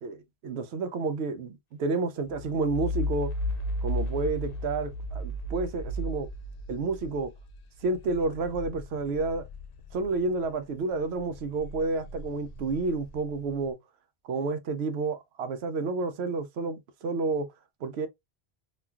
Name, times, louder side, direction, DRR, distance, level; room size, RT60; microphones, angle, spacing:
voice 1, 0.0-3.3 3.8-6.3 6.7-7.3 7.8-9.5 9.9-13.8 14.3-17.5 17.8-18.1, right 3 dB, 80° right, 0.9 m, -30 dB
sound 1, 2.3-10.5 10.9-13.5, equal, 65° left, 0.8 m, -35 dB
3.0 x 2.3 x 2.3 m
omnidirectional pair, 1.1 m